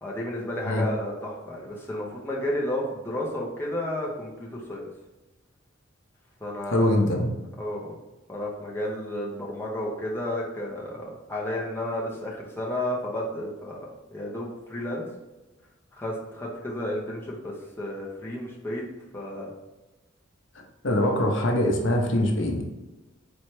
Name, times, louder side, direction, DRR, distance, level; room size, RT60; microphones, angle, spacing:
voice 1, 0.0-4.9 6.4-7.0 7.6-7.9 8.3-15.1 15.9-18.9 19.1-19.5, left 1 dB, 10° left, -4 dB, 0.7 m, -32 dB
voice 2, 6.7-7.3 20.8-22.6, left 1 dB, 65° left, 2 dB, 0.7 m, -23 dB
4.3 x 3.1 x 3.1 m, 1.1 s
head